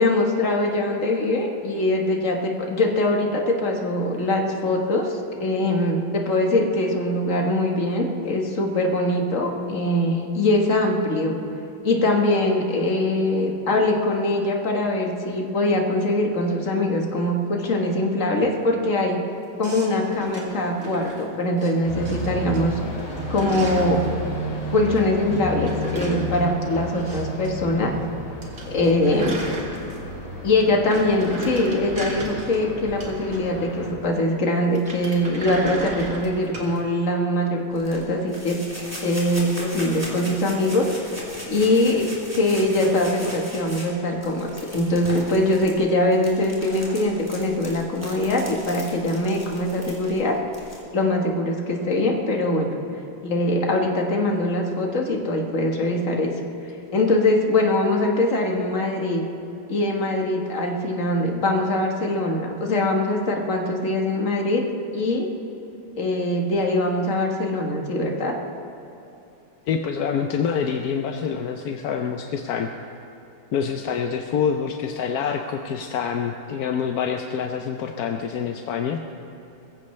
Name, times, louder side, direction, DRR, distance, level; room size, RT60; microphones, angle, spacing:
voice 1, 0.0-11.3 11.8-19.2 19.6-22.8 23.3-24.0 24.7-27.9 28.7-29.4 30.4-38.6 39.0-40.9 41.5-42.1 42.4-50.4 50.9-52.7 53.2-56.3 56.9-59.2 59.7-64.6 64.9-65.3 66.0-68.3, left 1 dB, 45° left, 1 dB, 1.7 m, -22 dB
sound 1, 19.6-21.7 22.1-22.6 22.9-24.1 25.3-27.5 27.8-27.9 28.1-28.2 28.4-30.2 30.6-33.7 34.7-36.8, right 2 dB, 45° right, 2.2 m, -34 dB
sound 2, 21.8-33.9, left 1 dB, 90° left, 4.7 m, -33 dB
sound 3, 37.7-50.8, equal, 5° right, 3.1 m, -38 dB
voice 2, 69.7-72.7 73.5-79.2, left 7 dB, 65° left, 4 dB, 1.0 m, -26 dB
21.5 x 15.0 x 3.2 m, 2.9 s
omnidirectional pair, 2.1 m